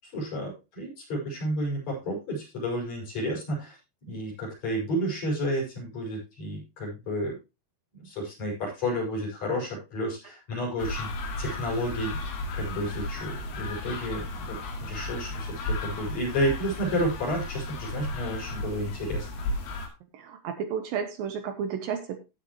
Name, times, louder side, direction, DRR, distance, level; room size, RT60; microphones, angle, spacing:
voice 1, 0.0-3.8 4.1-7.4 7.9-11.1 11.4-12.2 12.5-19.3, equal, 40° left, -3 dB, 7.4 m, -31 dB
sound 1, 10.8-19.9, left 2 dB, 70° left, 4.0 m, -34 dB
voice 2, 20.1-22.2, right 7 dB, 70° right, 8 dB, 2.4 m, -32 dB
16.5 x 6.7 x 3.0 m, 0.27 s
omnidirectional pair, 4.8 m